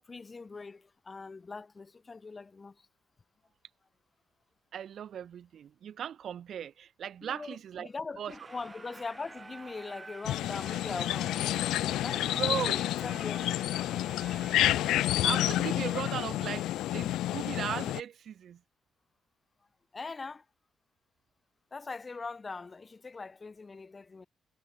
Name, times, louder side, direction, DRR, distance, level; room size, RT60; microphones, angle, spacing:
voice 1, 0.1-2.9 7.2-13.6 19.9-20.4 21.7-24.3, left 4 dB, 30° left, 1.1 m, -42 dB
voice 2, 4.7-7.9 8.2-8.3 12.2-12.8 15.2-18.6, right 9 dB, 65° right, 1.5 m, -37 dB
sound 1, 8.3-14.9, right 3 dB, 25° right, 2.2 m, -49 dB
sound 2, 10.2-18.0, left 14 dB, 85° left, 0.3 m, -29 dB
cardioid pair, 90°, 0 cm